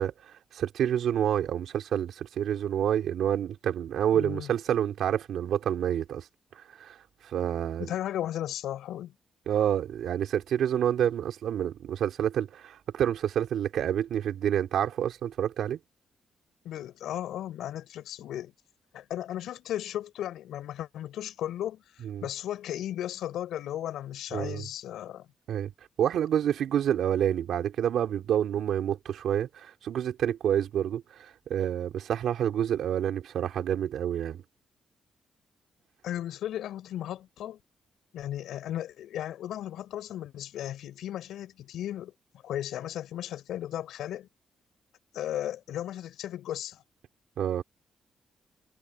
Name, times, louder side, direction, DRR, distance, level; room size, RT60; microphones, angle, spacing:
voice 1, 0.0-6.2 6.5-7.0 7.2-7.9 9.5-15.8 22.0-22.2 24.3-24.6 25.5-25.7 26.0-34.4 47.4-47.6, right 10 dB, 80° right, 4.2 m, -28 dB
voice 2, 4.1-4.5 7.8-9.1 16.6-18.5 18.9-25.3 36.0-37.6 38.1-42.1 42.4-44.3 45.1-46.8, left 12 dB, 90° left, 7.4 m, -35 dB
cardioid pair, 100°, 0 cm